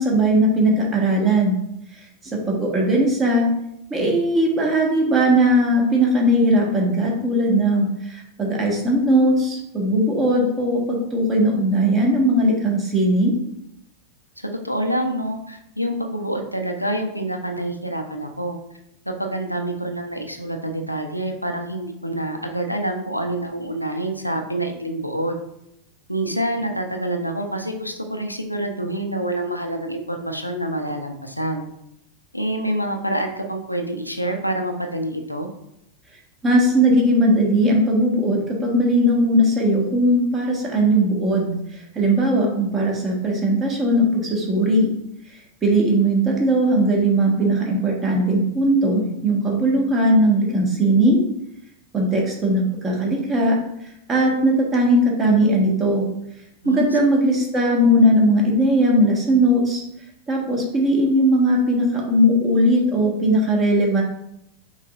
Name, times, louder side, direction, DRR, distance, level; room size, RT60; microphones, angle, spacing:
voice 1, 0.0-1.5 2.2-3.5 3.9-13.3 36.4-44.9 45.6-51.2 51.9-53.6 54.1-56.1 56.6-59.8 60.3-64.0, right 1 dB, 20° right, -1 dB, 1.4 m, -19 dB
voice 2, 14.4-18.6 19.1-25.4 26.1-31.7 32.3-35.5 56.6-56.9 57.3-57.4, right 1 dB, 90° left, 4 dB, 0.5 m, -27 dB
5.6 x 4.0 x 2.4 m, 0.79 s
figure-of-eight pair, 90°, 0 cm